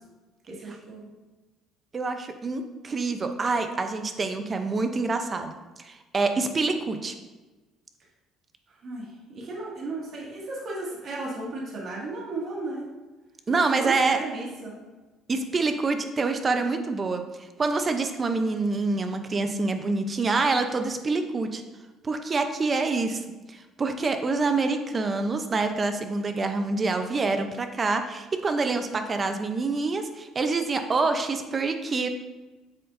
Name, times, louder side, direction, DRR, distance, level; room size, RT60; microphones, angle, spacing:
voice 1, 0.5-1.1 8.8-12.8 13.5-14.8, right 2 dB, 45° right, -4 dB, 2.0 m, -35 dB
voice 2, 1.9-5.5 5.8-7.1 13.5-14.2 15.3-17.2 17.6-21.6 22.0-23.2 23.5-32.1, right 3 dB, 25° right, 7 dB, 0.6 m, -26 dB
8.1 x 6.8 x 2.6 m, 1.2 s
cardioid pair, 135°, 0 cm